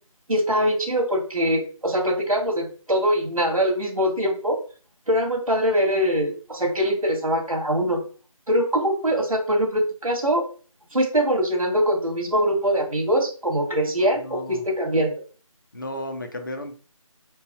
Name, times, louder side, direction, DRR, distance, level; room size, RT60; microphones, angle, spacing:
voice 1, 0.3-4.6 5.1-8.0 8.5-10.4 10.9-15.1, equal, 75° right, 1 dB, 2.1 m, -23 dB
voice 2, 13.8-14.6 15.7-16.7, left 1 dB, 35° left, 4 dB, 0.8 m, -34 dB
4.5 x 2.6 x 4.3 m, 0.39 s
figure-of-eight pair, 165°, 18 cm